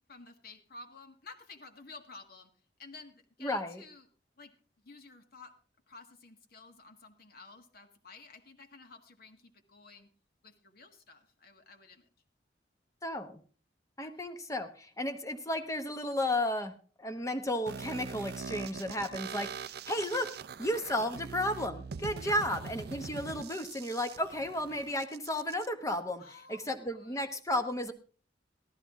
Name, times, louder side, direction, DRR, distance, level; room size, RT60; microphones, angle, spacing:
voice 1, 0.1-2.5 2.8-4.1 4.4-4.5 4.8-5.5 5.9-10.1 10.4-12.1 14.0-14.1 22.2-22.5 26.2-27.2, left 3 dB, 55° left, 4 dB, 1.6 m, -52 dB
voice 2, 3.4-3.8 13.0-13.4 14.0-26.2 26.5-27.9, left 1 dB, 15° left, 8 dB, 1.0 m, -33 dB
sound 1, 17.7-25.7, right 5 dB, 60° right, 0.5 m, -43 dB
14.5 x 13.0 x 3.7 m, 0.40 s
head